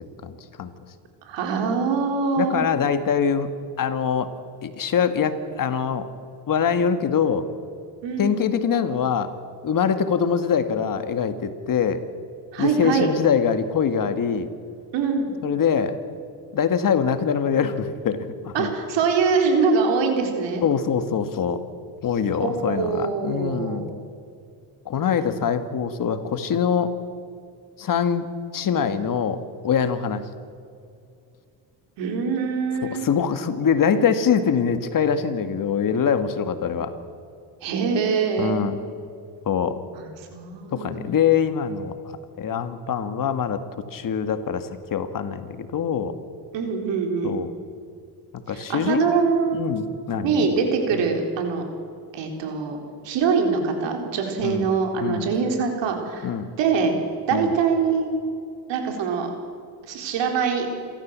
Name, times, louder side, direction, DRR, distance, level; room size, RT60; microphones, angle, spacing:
voice 1, 0.2-0.7 2.4-3.5 3.8-4.3 4.6-6.0 6.5-7.4 8.2-9.3 9.6-12.0 12.6-14.5 15.4-16.0 16.5-18.7 20.6-21.6 22.0-24.0 24.9-26.9 27.8-28.3 28.5-30.2 33.0-36.9 38.4-38.8 39.5-39.8 40.7-41.9 42.4-43.6 43.9-46.1 47.2-47.5 48.3-49.1 49.5-50.5 54.4-54.7 55.0-55.3 56.2-56.5 57.3-57.5, left 7 dB, 50° left, 10 dB, 1.8 m, -23 dB
voice 2, 1.3-2.7 8.0-8.3 12.5-13.1 14.9-15.3 18.5-20.6 22.4-23.8 32.0-33.0 37.6-38.6 39.9-41.0 46.5-47.4 48.5-49.7 50.2-51.6 52.1-52.8 53.0-56.3 56.6-57.0 57.3-58.1 58.7-59.3 59.8-60.7, right 5 dB, 80° right, 3 dB, 4.2 m, -23 dB
27.5 x 13.5 x 7.5 m, 2.4 s
cardioid pair, 105°, 43 cm